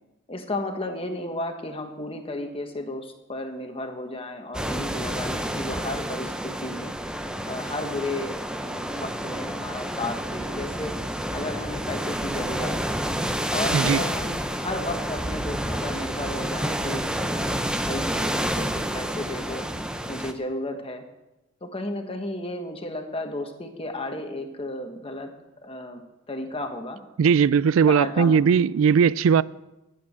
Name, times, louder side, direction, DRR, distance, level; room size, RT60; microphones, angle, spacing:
voice 1, 0.3-6.9 7.4-11.0 11.3-12.9 13.5-19.6 20.1-21.0 21.6-25.3 25.6-26.0 26.3-27.0 27.9-28.4, left 1 dB, 25° left, 1.3 m, -33 dB
sound 1, 4.5-20.3, equal, 5° right, 0.6 m, -29 dB
voice 2, 27.2-29.4, right 6 dB, 75° right, 0.3 m, -19 dB
13.0 x 8.6 x 6.4 m
head